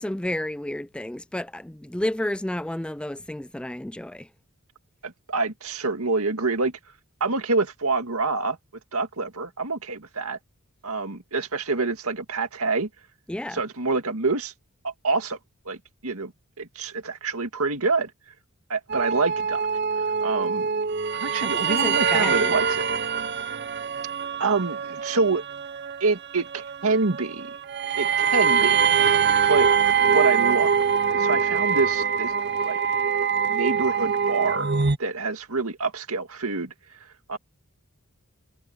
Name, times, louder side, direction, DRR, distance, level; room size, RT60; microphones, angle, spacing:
voice 1, 0.0-4.3 13.3-13.6 21.4-22.5, left 1 dB, 5° left, 0.4 m, -31 dB
voice 2, 5.0-6.7 7.2-8.6 8.9-10.4 10.8-12.9 13.5-14.5 14.8-15.4 15.7-15.8 16.0-16.3 16.6-18.1 18.7-19.7 20.2-20.7 21.1-22.9 24.4-25.4 26.0-27.5 28.0-28.8 29.5-29.7 30.0-30.7 31.1-32.3 32.6-32.8 33.5-34.7 35.0-36.7 37.3-37.4, right 3 dB, 75° right, 2.1 m, -26 dB
sound 1, 18.9-35.0, right 6 dB, 50° right, 1.0 m, -24 dB
head